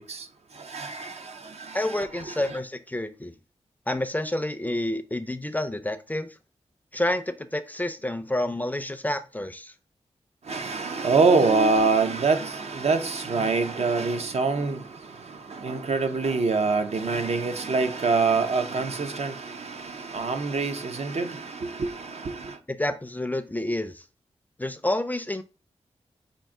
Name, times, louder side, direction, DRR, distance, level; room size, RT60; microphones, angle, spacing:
voice 1, 0.6-2.6 10.5-22.6, right 4 dB, 65° right, 0.6 m, -25 dB
voice 2, 1.7-3.3 3.9-6.4 6.9-9.7 22.7-24.0 24.6-25.4, left 1 dB, 15° left, 0.4 m, -29 dB
5.3 x 2.6 x 3.6 m
wide cardioid pair, 75°, 12 cm